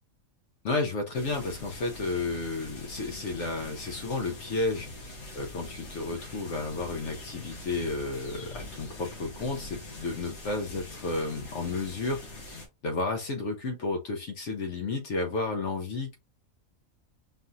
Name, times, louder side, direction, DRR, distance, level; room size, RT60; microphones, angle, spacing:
voice 1, 0.6-12.5 12.8-16.2, left 3 dB, 65° left, 1.0 m, -32 dB
sound 1, 1.1-12.7, left 2 dB, 90° left, 1.9 m, -44 dB
5.4 x 2.8 x 2.5 m
omnidirectional pair, 1.5 m